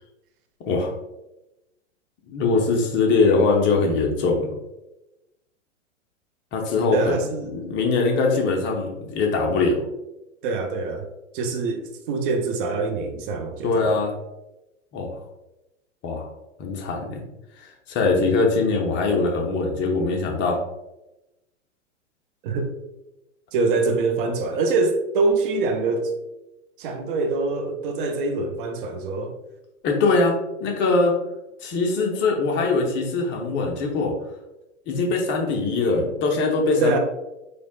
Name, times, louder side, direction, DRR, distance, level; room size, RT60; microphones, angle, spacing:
voice 1, 2.3-4.5 6.5-7.1 7.5-9.8 13.6-14.1 14.9-15.2 16.0-16.3 16.6-17.2 17.6-20.6 29.8-31.2 31.6-34.1 34.9-37.0, left 3 dB, 30° left, 0 dB, 0.8 m, -22 dB
voice 2, 6.9-7.7 10.4-11.1 11.3-14.0 22.4-22.7 23.5-26.1 26.8-29.3 36.8-37.0, right 3 dB, 45° right, 5 dB, 0.6 m, -24 dB
4.3 x 3.2 x 2.2 m, 0.95 s
hypercardioid pair, 110°, 37 cm